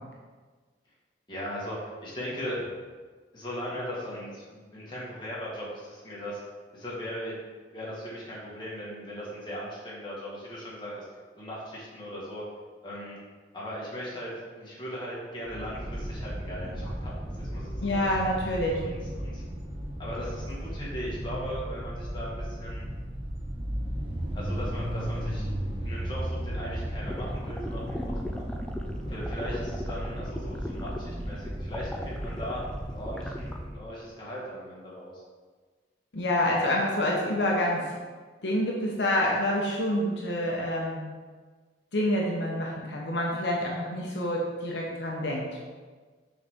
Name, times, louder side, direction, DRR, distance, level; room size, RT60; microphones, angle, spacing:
voice 1, 1.3-2.6 3.3-6.4 6.7-11.0 11.4-12.4 12.8-13.2 13.5-18.2 18.8-19.4 20.0-22.9 24.3-25.5 25.8-28.4 29.1-32.6 32.9-35.2, equal, 25° left, -6 dB, 1.6 m, -38 dB
sound 1, 15.4-33.8, equal, 30° right, 0.8 m, -35 dB
voice 2, 17.8-18.8 36.1-37.9 38.4-41.0 41.9-45.4, left 1 dB, 75° left, -2 dB, 0.9 m, -27 dB
sound 2, 27.1-33.6, left 1 dB, 5° left, 0.4 m, -37 dB
6.4 x 4.1 x 3.6 m, 1.4 s
head